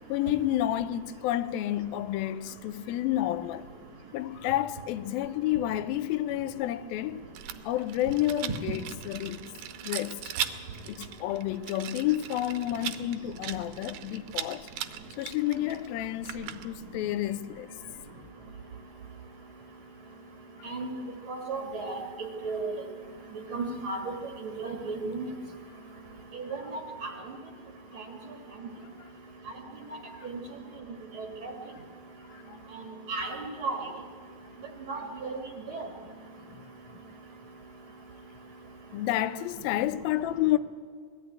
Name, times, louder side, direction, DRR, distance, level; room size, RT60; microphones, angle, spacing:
voice 1, 0.1-3.7 4.1-7.2 7.6-9.5 9.8-10.2 10.9-14.7 15.2-17.8 26.5-26.7 29.0-29.1 30.1-30.3 30.7-30.8 32.3-32.6 38.9-40.6, left 13 dB, 85° left, 2.5 m, -30 dB
Rattle, 7.3-16.9, right 10 dB, 75° right, 2.4 m, -39 dB
voice 2, 21.3-22.0 22.4-22.6 23.5-24.1 24.6-25.2 26.4-26.6 27.0-27.1 31.4-31.5 33.1-33.3 33.6-33.8 34.9-35.4 35.7-35.9, right 3 dB, 45° right, 2.0 m, -33 dB
20.5 x 14.5 x 9.3 m
omnidirectional pair, 4.1 m